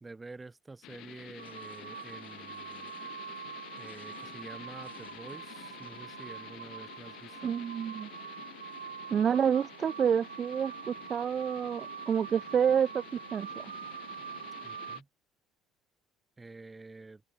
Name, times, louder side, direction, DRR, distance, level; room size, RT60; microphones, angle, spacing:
voice 1, 0.0-2.9 3.8-7.5 14.6-15.1 16.4-17.2, right 3 dB, 20° right, 2.1 m, -48 dB
sound 1, 0.8-15.0, left 16 dB, 60° left, 5.6 m, -50 dB
sound 2, 1.4-15.0, right 7 dB, 90° right, 1.1 m, -44 dB
voice 2, 7.4-8.1 9.1-13.0 13.3-13.5, right 8 dB, 40° right, 0.4 m, -28 dB
open air
hypercardioid pair, 60°, 0 cm